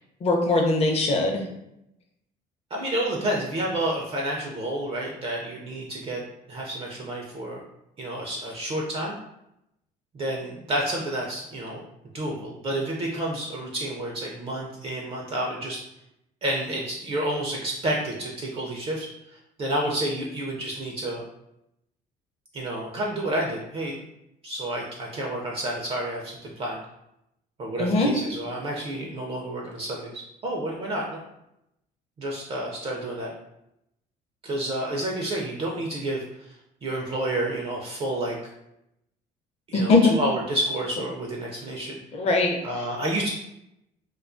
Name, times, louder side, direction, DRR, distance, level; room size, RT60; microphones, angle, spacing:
voice 1, 0.2-1.4 27.8-28.1 39.7-40.1 42.1-42.6, left 3 dB, 40° left, 2 dB, 0.5 m, -21 dB
voice 2, 2.7-6.2 6.5-7.6 8.0-9.2 10.1-11.8 12.1-15.8 16.4-21.2 22.5-24.0 24.4-26.8 27.6-31.2 32.2-33.3 34.4-36.6 36.8-38.4 39.7-42.0 42.6-43.3, right 1 dB, 35° right, -1 dB, 0.4 m, -30 dB
2.3 x 2.2 x 2.4 m, 0.83 s
cardioid pair, 110°, 17 cm